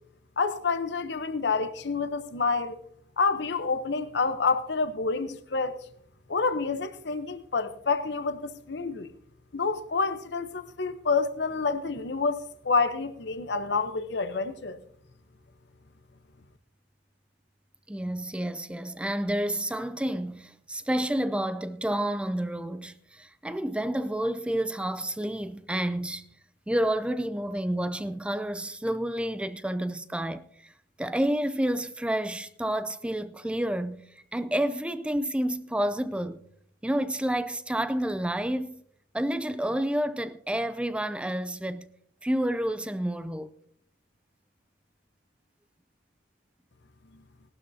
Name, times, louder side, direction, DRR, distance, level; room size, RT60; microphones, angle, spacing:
voice 1, 0.4-2.8 3.2-5.8 6.3-9.1 9.5-12.4 12.6-14.8, left 4 dB, 70° left, 0.8 m, -28 dB
voice 2, 17.9-26.3 26.7-30.7 31.0-36.4 36.8-38.8 39.1-41.9 42.2-43.5, right 1 dB, 5° right, 0.4 m, -29 dB
18.0 x 12.5 x 2.7 m
head